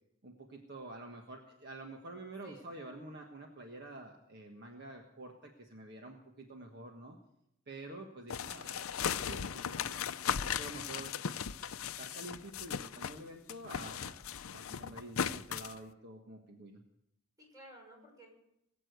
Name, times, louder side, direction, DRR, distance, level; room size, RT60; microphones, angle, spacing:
voice 1, 0.2-7.2 7.7-11.1 12.0-14.3 14.5-16.8, right 2 dB, 50° right, 2 dB, 1.5 m, -48 dB
voice 2, 2.4-2.7 8.5-9.0 10.2-10.7 17.4-18.3, right 1 dB, 15° right, 0 dB, 6.1 m, -56 dB
sound 1, 8.3-13.2 13.5-15.8, left 7 dB, 80° left, 0.6 m, -37 dB
20.5 x 8.6 x 8.1 m, 0.82 s
head